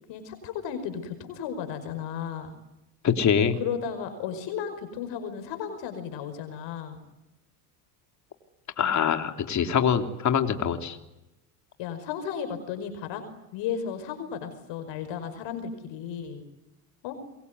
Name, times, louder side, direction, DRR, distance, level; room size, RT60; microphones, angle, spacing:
voice 1, 0.1-2.5 3.6-7.0 11.8-13.2 13.5-16.4 17.0-17.2, left 8 dB, 60° left, 9 dB, 5.4 m, -34 dB
voice 2, 3.0-3.6 8.8-11.0, left 7 dB, 35° left, 7 dB, 3.2 m, -24 dB
27.5 x 22.5 x 9.7 m, 0.93 s
supercardioid pair, 110°, 48 cm